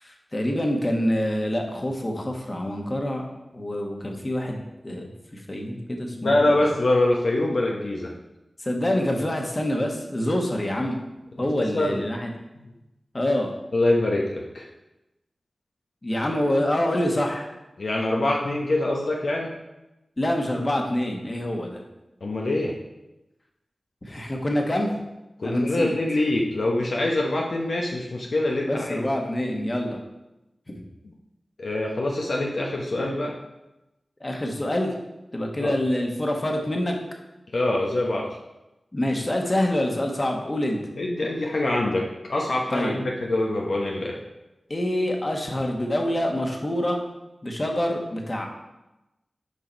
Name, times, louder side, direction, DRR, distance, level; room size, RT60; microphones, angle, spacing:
voice 1, 0.0-3.3 3.5-6.6 8.6-11.0 11.4-12.3 13.1-13.5 16.0-17.5 20.2-21.8 24.0-24.9 25.4-25.9 28.7-30.0 30.7-30.8 34.2-34.9 35.3-37.0 38.9-40.8 42.7-43.0 44.7-47.0 47.4-48.5, left 1 dB, 40° left, 2 dB, 1.3 m, -26 dB
voice 2, 6.1-8.1 11.4-12.0 12.5-12.7 13.7-14.7 16.3-16.4 17.8-19.5 22.2-22.7 25.4-29.0 31.0-31.1 31.6-33.3 35.6-35.7 37.5-38.3 41.0-44.2, left 2 dB, 75° left, -1 dB, 0.8 m, -24 dB
6.6 x 5.0 x 4.4 m, 0.97 s
cardioid pair, 40°, 0 cm